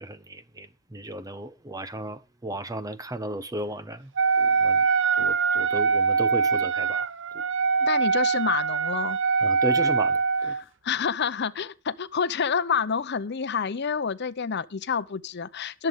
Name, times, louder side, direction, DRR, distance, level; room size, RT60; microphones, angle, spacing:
voice 1, 0.0-4.1 4.4-4.9 5.2-7.1 7.3-7.4 9.4-10.5, right 1 dB, 20° right, 0.7 m, -35 dB
Wind instrument woodwind instrument, 4.2-10.6, right 5 dB, 65° right, 0.7 m, -23 dB
voice 2, 7.8-9.2 10.5-15.9, left 6 dB, 55° left, 0.7 m, -28 dB
22.5 x 7.7 x 3.6 m
head